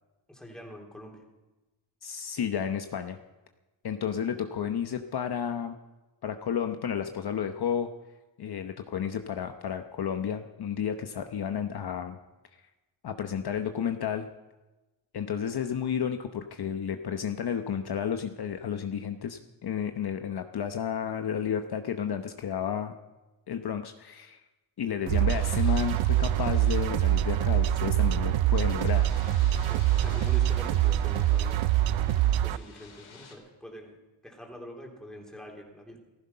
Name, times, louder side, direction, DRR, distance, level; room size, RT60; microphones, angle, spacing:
voice 1, 0.3-1.2 29.5-31.7 32.4-34.0 34.2-36.0, equal, ahead, 0 dB, 3.5 m, -44 dB
voice 2, 2.0-3.2 3.8-5.8 6.2-7.9 8.4-12.2 13.0-14.3 15.1-22.9 23.5-24.4 24.8-29.1, left 8 dB, 55° left, 7 dB, 0.9 m, -32 dB
sound 1, 25.1-32.6, right 13 dB, 75° right, 0.5 m, -24 dB
sound 2, 25.3-33.3, left 5 dB, 75° left, 3.5 m, -52 dB
15.5 x 14.5 x 5.6 m, 1.1 s
cardioid pair, 100°, 46 cm